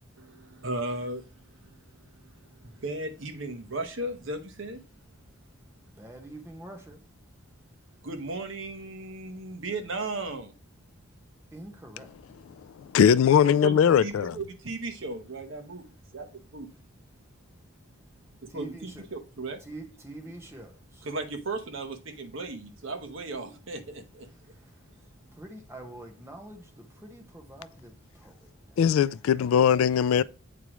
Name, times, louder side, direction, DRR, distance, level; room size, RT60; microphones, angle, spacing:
voice 1, 0.2-1.2 1.6-1.8 2.6-4.8 8.0-10.5 13.4-15.8 16.1-16.7 18.4-19.6 21.1-24.3, right 2 dB, 60° right, 1.0 m, -36 dB
voice 2, 6.0-7.0 11.5-12.1 18.5-19.1 19.6-21.0 25.4-27.9 28.2-28.3, right 1 dB, 10° right, 1.2 m, -45 dB
voice 3, 12.8-14.4 28.8-30.2, left 8 dB, 75° left, 0.3 m, -20 dB
8.2 x 4.8 x 3.0 m
head